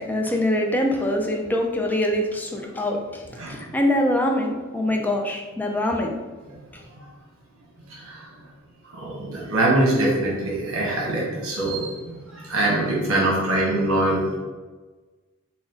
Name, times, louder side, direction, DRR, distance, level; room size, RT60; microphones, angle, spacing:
voice 1, 0.0-6.2 6.7-6.8, left 1 dB, 10° left, 1 dB, 0.4 m, -24 dB
voice 2, 9.0-14.4, right 1 dB, 70° right, -4 dB, 1.1 m, -23 dB
4.1 x 2.3 x 3.8 m, 1.3 s
head